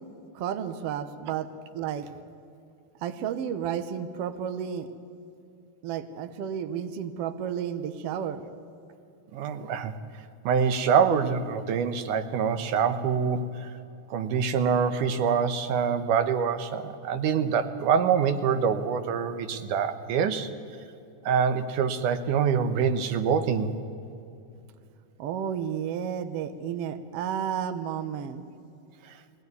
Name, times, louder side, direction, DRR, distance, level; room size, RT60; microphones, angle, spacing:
voice 1, 0.4-1.5 1.7-2.1 3.0-4.9 5.8-8.5 25.2-28.5, right 8 dB, 65° right, 10 dB, 1.6 m, -32 dB
voice 2, 9.3-9.9 10.5-13.7 14.1-20.5 21.3-23.7, right 6 dB, 80° right, 10 dB, 2.5 m, -25 dB
21.5 x 16.5 x 9.6 m, 2.6 s
omnidirectional pair, 3.6 m